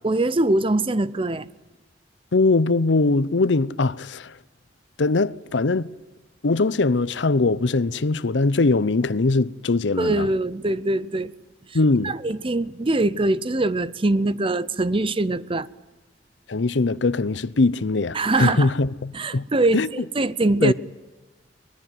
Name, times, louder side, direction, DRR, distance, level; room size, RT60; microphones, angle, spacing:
voice 1, 0.0-1.5 10.0-11.3 11.7-11.8 12.0-15.7 18.1-18.7 19.1-20.7, right 2 dB, 30° right, 0.7 m, -23 dB
voice 2, 2.3-4.4 5.0-5.9 6.4-10.3 11.7-12.1 16.5-19.5 19.7-19.9 20.6-20.7, left 3 dB, 80° left, 0.7 m, -21 dB
23.5 x 20.5 x 9.3 m
head